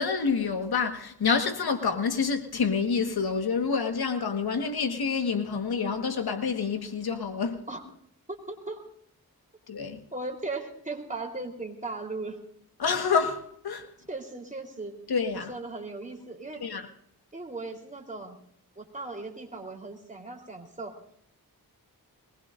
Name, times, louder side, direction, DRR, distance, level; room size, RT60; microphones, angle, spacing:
voice 1, 0.0-7.7 9.7-10.0 12.8-13.9 15.1-15.5 16.6-16.9, left 5 dB, 75° left, 1.6 m, -28 dB
voice 2, 8.3-8.8 10.1-12.4 14.1-14.9 15.3-16.6 17.3-18.4 18.8-20.9, right 3 dB, 20° right, 3.8 m, -37 dB
22.0 x 20.0 x 2.6 m
cardioid pair, 75°, 38 cm